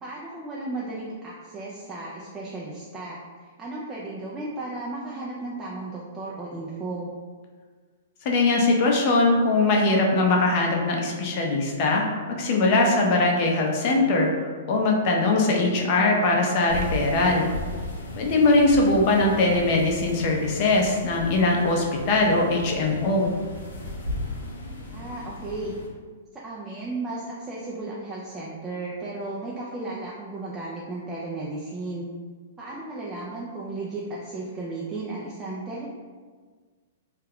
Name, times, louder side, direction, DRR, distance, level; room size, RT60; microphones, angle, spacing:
voice 1, 0.0-7.1 24.9-25.7 26.3-32.1 32.6-35.9, right 2 dB, 15° right, -6 dB, 0.4 m, -34 dB
voice 2, 8.2-14.3 14.7-17.5 18.2-23.3, left 2 dB, 45° left, 0 dB, 0.6 m, -21 dB
sound 1, 16.7-25.9, left 1 dB, 90° left, 0.5 m, -36 dB
2.3 x 2.2 x 3.5 m, 1.5 s
hypercardioid pair, 130°, 0 cm